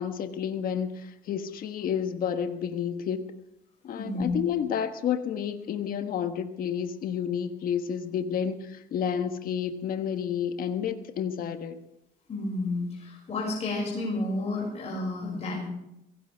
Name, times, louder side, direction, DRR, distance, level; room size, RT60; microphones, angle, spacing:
voice 1, 0.0-3.3 3.8-11.8, left 8 dB, 60° left, 7 dB, 1.4 m, -30 dB
voice 2, 3.9-4.4 12.3-15.7, left 2 dB, 40° left, -3 dB, 6.4 m, -31 dB
23.5 x 17.0 x 3.6 m, 0.84 s
cardioid pair, 110°, 17 cm